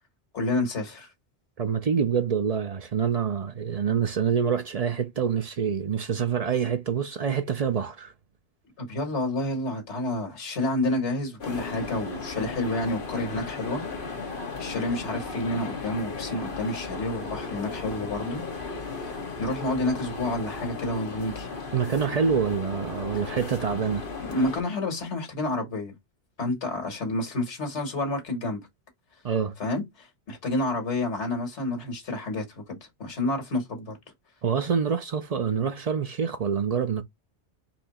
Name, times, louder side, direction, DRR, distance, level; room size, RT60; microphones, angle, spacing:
voice 1, 0.3-1.1 8.8-13.8 14.6-18.4 19.0-21.5 24.2-25.9 26.4-28.6 29.6-34.0, left 2 dB, 85° left, 1.8 m, -29 dB
voice 2, 1.6-8.1 21.7-24.0 29.2-29.5 34.4-37.0, right 7 dB, 50° right, 0.4 m, -26 dB
sound 1, 11.4-24.6, left 4 dB, 50° left, 1.4 m, -36 dB
4.3 x 2.8 x 4.2 m
omnidirectional pair, 1.1 m